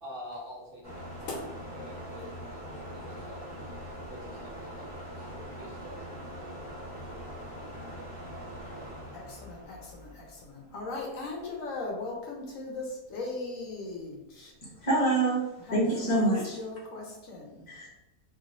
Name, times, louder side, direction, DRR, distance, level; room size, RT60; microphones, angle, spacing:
voice 1, 0.0-1.1 1.7-3.5 4.1-6.1, equal, 60° right, -7 dB, 0.6 m, -46 dB
sound 1, 0.8-11.0, equal, 10° left, 1.3 m, -42 dB
voice 2, 1.2-1.5 3.1-3.2 9.1-14.5 15.6-17.7, left 3 dB, 65° left, -1 dB, 0.9 m, -39 dB
voice 3, 14.8-15.4 15.7-16.6 17.7-17.9, right 2 dB, 35° left, -6 dB, 0.8 m, -25 dB
2.9 x 2.7 x 2.5 m, 0.97 s
omnidirectional pair, 1.6 m